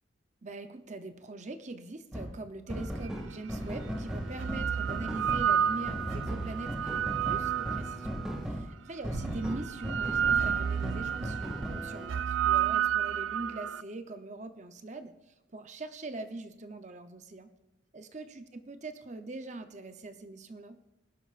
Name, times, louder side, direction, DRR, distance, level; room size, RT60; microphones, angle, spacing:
voice 1, 0.4-17.5 17.9-20.8, right 2 dB, 40° right, 8 dB, 0.7 m, -42 dB
sound 1, 2.1-2.3 2.7-8.6 9.0-12.1, equal, 5° right, 2.1 m, -37 dB
sound 2, 3.1-3.2 4.1-8.4 9.1-13.8, right 9 dB, 90° right, 0.4 m, -31 dB
20.0 x 12.0 x 2.5 m, 1.1 s
head